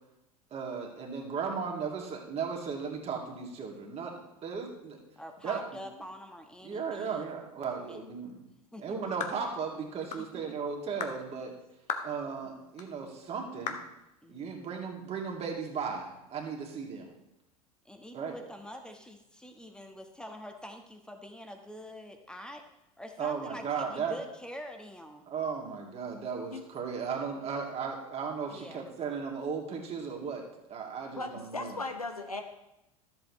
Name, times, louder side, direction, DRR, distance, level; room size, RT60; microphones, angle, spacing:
voice 1, 0.5-5.0 5.4-5.8 6.6-8.4 8.8-11.5 12.0-13.8 14.3-17.1 18.1-18.3 23.2-24.2 25.3-31.8, right 6 dB, 35° right, 1 dB, 2.3 m, -36 dB
voice 2, 5.2-7.3 7.9-8.0 8.7-9.0 10.3-10.4 12.4-12.5 14.2-14.7 17.8-22.6 23.0-25.3 28.5-28.8, equal, 5° left, 4 dB, 1.3 m, -45 dB
sound 1, 9.2-9.4 10.1-10.3 11.0-11.2 11.9-12.1 12.8-12.9 13.7-13.9, left 7 dB, 40° left, 1.2 m, -35 dB
voice 3, 31.1-32.4, left 3 dB, 90° left, 5 dB, 1.0 m, -37 dB
13.5 x 7.9 x 3.2 m, 0.89 s
figure-of-eight pair, 75°, 19 cm